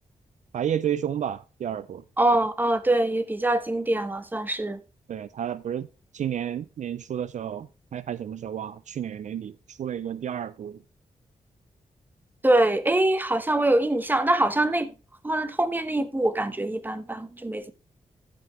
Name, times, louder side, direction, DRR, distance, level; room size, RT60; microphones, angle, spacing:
voice 1, 0.5-2.0 5.1-5.9 6.1-10.8, right 9 dB, 70° right, 0.4 m, -31 dB
voice 2, 2.2-4.8 12.4-14.9 15.2-17.7, right 1 dB, 15° right, 1.1 m, -24 dB
14.0 x 5.9 x 3.1 m
cardioid pair, 80°, 13 cm